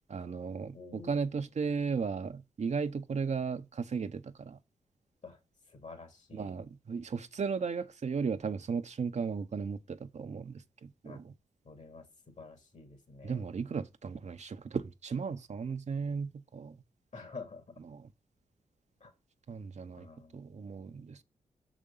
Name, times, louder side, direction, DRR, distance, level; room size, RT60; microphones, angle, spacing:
voice 1, 0.1-4.6 6.3-11.3 13.2-16.8 17.9-18.1 19.5-20.1 20.3-21.2, right 5 dB, 55° right, 0.8 m, -35 dB
voice 2, 0.7-1.5 5.2-5.4 5.7-6.5 11.0-11.2 11.6-13.4 17.1-17.8 19.0-19.1 20.0-20.5, left 4 dB, 55° left, 2.8 m, -49 dB
6.5 x 5.0 x 5.6 m
supercardioid pair, 45°, 14 cm